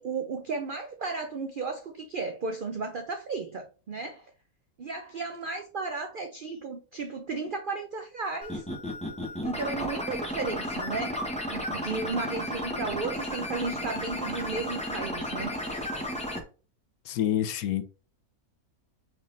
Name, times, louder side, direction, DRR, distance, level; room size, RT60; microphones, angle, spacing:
voice 1, 0.0-4.3 4.8-8.7 9.4-11.2 11.5-15.5, right 4 dB, 75° right, 0.4 m, -34 dB
sound 1, 8.4-16.4, left 1 dB, 5° left, 0.7 m, -33 dB
voice 2, 17.1-17.8, left 11 dB, 75° left, 1.1 m, -27 dB
4.4 x 3.7 x 2.5 m
omnidirectional pair, 1.6 m